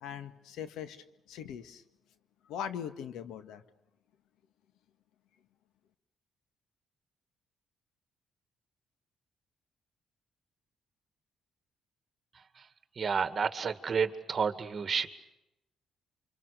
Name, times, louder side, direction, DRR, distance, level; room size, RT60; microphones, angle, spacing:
voice 1, 0.0-1.8 2.4-3.6, left 8 dB, 85° left, 11 dB, 1.7 m, -41 dB
voice 2, 12.3-12.7 13.0-15.1, right 6 dB, 40° right, 10 dB, 2.1 m, -31 dB
29.0 x 26.0 x 6.9 m, 0.88 s
cardioid pair, 90°, 0 cm